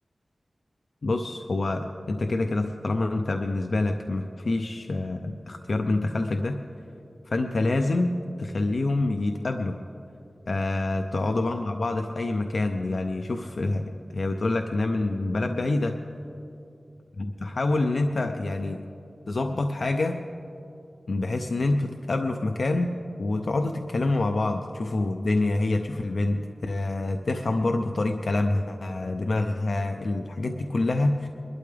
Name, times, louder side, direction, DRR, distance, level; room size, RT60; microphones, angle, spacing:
voice 1, 1.0-6.6 7.3-9.8 10.5-16.0 17.2-18.8 19.3-20.2 21.1-22.9 23.2-31.3, left 2 dB, 70° left, 5 dB, 0.6 m, -26 dB
22.0 x 12.0 x 3.4 m, 2.8 s
wide cardioid pair, 80°, 0 cm